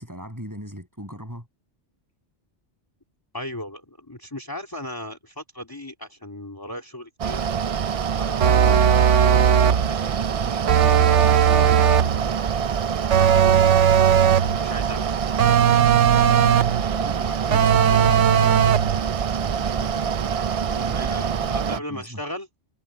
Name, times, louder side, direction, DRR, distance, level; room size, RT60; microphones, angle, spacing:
voice 1, 0.0-1.5 16.9-18.3 19.3-22.2, equal, 15° right, 7.4 m, -39 dB
voice 2, 3.3-7.4 8.1-8.8 9.1-12.4 13.2-14.2 14.6-15.1 20.8-22.5, left 1 dB, 15° left, 2.9 m, -37 dB
Mechanical fan, 7.2-21.8, right 7 dB, 65° right, 0.3 m, -25 dB
sound 1, 8.4-9.9 10.7-12.2 13.1-14.6 15.4-16.8 17.5-19.0, right 8 dB, 85° right, 1.2 m, -17 dB
omnidirectional pair, 1.2 m